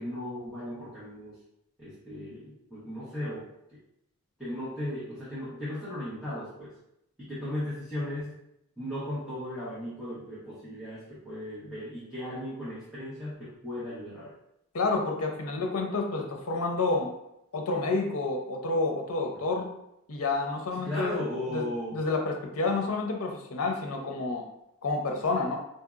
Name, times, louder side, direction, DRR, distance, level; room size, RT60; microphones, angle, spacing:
voice 1, 0.0-1.4 1.8-3.8 4.4-6.7 7.2-8.4 8.8-14.3 20.8-22.0, left 1 dB, ahead, -13 dB, 1.1 m, -36 dB
voice 2, 14.7-17.1 17.5-19.7 20.1-21.2 21.5-21.7 21.9-24.4 24.8-25.6, left 3 dB, 70° left, 2 dB, 0.6 m, -29 dB
4.1 x 2.7 x 2.4 m, 0.80 s
head